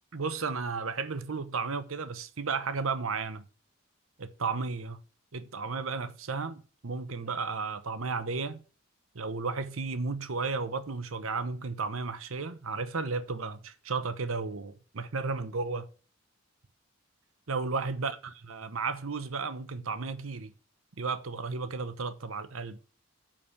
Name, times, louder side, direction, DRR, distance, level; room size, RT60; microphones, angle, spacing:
voice 1, 0.1-3.4 4.2-5.0 5.3-8.6 9.1-15.9 17.5-18.1 18.5-20.5 21.0-22.8, right 4 dB, 80° right, 0.9 m, -33 dB
6.5 x 6.0 x 7.0 m
head